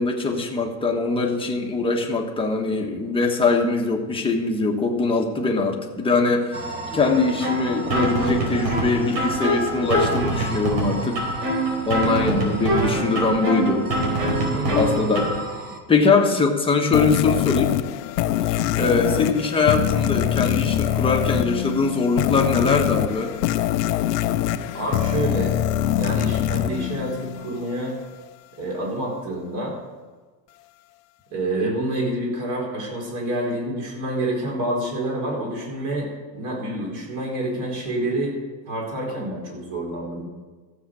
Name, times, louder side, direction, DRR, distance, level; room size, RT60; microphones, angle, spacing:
voice 1, 0.0-11.2 11.8-13.9 14.5-15.2 15.9-17.7 18.5-23.3, left 4 dB, 10° left, 1 dB, 1.3 m, -22 dB
sound 1, 6.5-15.8, right 2 dB, 20° right, 1.4 m, -37 dB
sound 2, 7.4-15.4, right 1 dB, 80° right, 4.5 m, -24 dB
voice 2, 14.5-14.8 24.7-25.5 25.9-28.0 28.6-29.8 31.3-38.4 38.7-40.2, right 1 dB, 40° right, -1 dB, 4.5 m, -28 dB
sound 3, 16.9-27.7, left 12 dB, 75° left, 0.8 m, -23 dB
14.5 x 7.4 x 6.3 m, 1.3 s
supercardioid pair, 150°, 48 cm